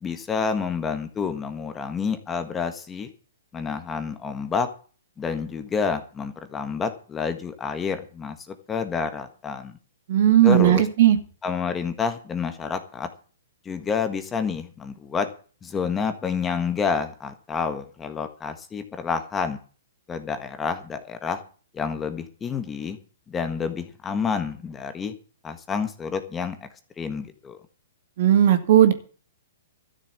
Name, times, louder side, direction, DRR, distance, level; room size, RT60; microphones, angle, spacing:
voice 1, 0.0-3.1 3.5-4.7 5.2-8.4 8.7-9.7 10.4-10.9 11.4-13.1 13.7-15.3 15.6-19.6 20.1-21.4 21.7-23.0 23.3-25.1 25.4-26.7 27.0-27.6, left 5 dB, 15° left, 9 dB, 1.6 m, -28 dB
voice 2, 10.1-11.2 28.2-28.9, right 11 dB, 55° right, 8 dB, 2.4 m, -16 dB
13.0 x 7.2 x 8.3 m, 0.39 s
hypercardioid pair, 140°, 0 cm